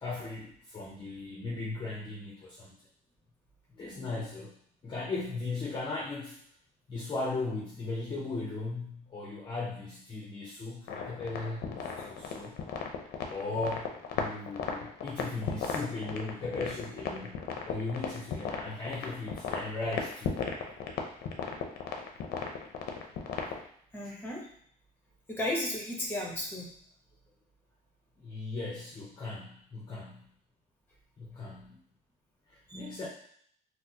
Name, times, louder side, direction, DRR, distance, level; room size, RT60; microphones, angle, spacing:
voice 1, 0.0-2.7 3.8-4.5 4.8-6.4 6.9-12.5 13.3-20.5 28.2-30.3 31.2-31.8 32.5-33.1, left 3 dB, 25° left, -4 dB, 0.6 m, -37 dB
sound 1, 10.9-23.7, left 6 dB, 65° left, 0.6 m, -36 dB
voice 2, 23.9-24.5 25.3-26.7 32.7-32.8, left 1 dB, 10° left, -2 dB, 1.0 m, -34 dB
4.1 x 2.1 x 2.7 m, 0.63 s
cardioid pair, 110°, 17 cm